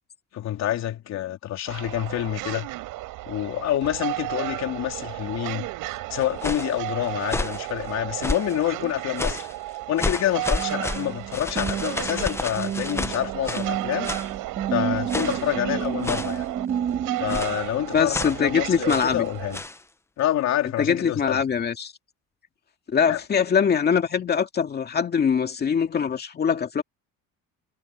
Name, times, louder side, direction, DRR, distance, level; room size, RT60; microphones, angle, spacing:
voice 1, 0.3-2.7 3.3-5.7 6.1-9.5 9.9-14.1 14.7-16.5 17.2-19.6 20.2-21.4 23.1-23.2, left 12 dB, 55° left, 3.6 m, -27 dB
sound 1, 1.7-19.6, right 17 dB, 85° right, 7.3 m, -33 dB
sound 2, 6.2-6.8 7.2-7.7 8.2-8.6 9.2-9.5 10.0-13.7 14.0-14.3 15.1-15.5 16.0-16.4 17.3-17.6 18.1-18.4 18.9-19.2 19.5-19.8, left 2 dB, 10° left, 0.8 m, -30 dB
sound 3, 10.6-17.4, right 8 dB, 35° right, 4.0 m, -31 dB
voice 2, 17.9-19.3 20.8-21.9 22.9-26.8, left 7 dB, 30° left, 2.3 m, -23 dB
cardioid pair, 160°, 32 cm